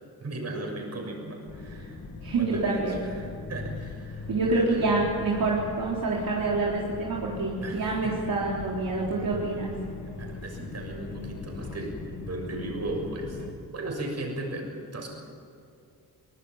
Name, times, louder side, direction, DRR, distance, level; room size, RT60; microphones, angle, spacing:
voice 1, 0.2-2.0 2.4-4.8 7.6-8.1 10.2-12.0 12.2-15.1, right 2 dB, 40° right, 2 dB, 6.7 m, -36 dB
sound 1, 1.5-13.5, left 4 dB, 45° left, 2.7 m, -40 dB
voice 2, 2.2-3.0 4.3-9.7, right 3 dB, 60° right, -4 dB, 3.9 m, -27 dB
24.0 x 20.0 x 7.3 m, 2.4 s
cardioid pair, 120°, 38 cm